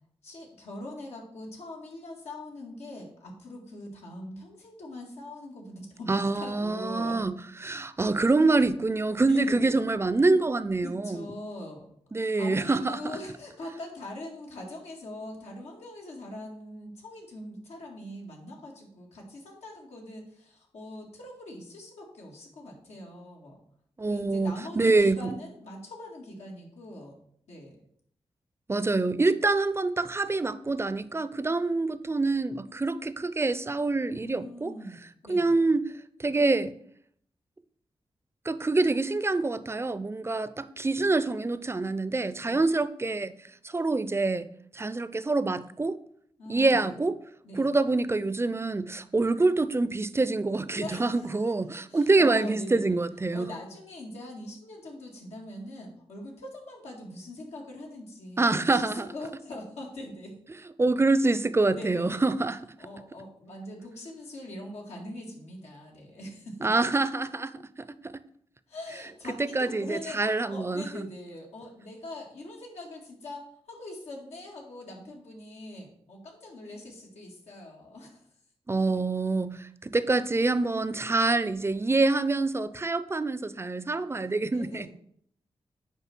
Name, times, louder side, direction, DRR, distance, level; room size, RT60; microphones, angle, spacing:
voice 1, 0.2-7.3 9.2-9.9 10.8-11.9 12.2-23.6 24.0-27.2 27.5-27.9 34.2-35.6 42.4-42.6 46.4-47.0 47.4-47.7 50.8-51.5 51.9-53.0 53.3-60.3 61.7-62.3 62.8-66.7 68.7-78.2 78.8-78.9 84.5-84.9, left 1 dB, 90° left, 1.9 m, -42 dB
voice 2, 6.1-7.4 7.6-11.3 12.1-13.0 24.0-25.3 28.7-34.7 35.3-35.9 36.2-36.7 38.5-43.3 43.6-46.0 46.5-47.2 47.6-53.5 58.4-59.0 60.8-62.6 66.6-67.6 68.0-68.1 69.5-71.1 78.7-84.9, right 3 dB, 25° right, 0.5 m, -26 dB
9.2 x 3.2 x 6.0 m
cardioid pair, 50°, 11 cm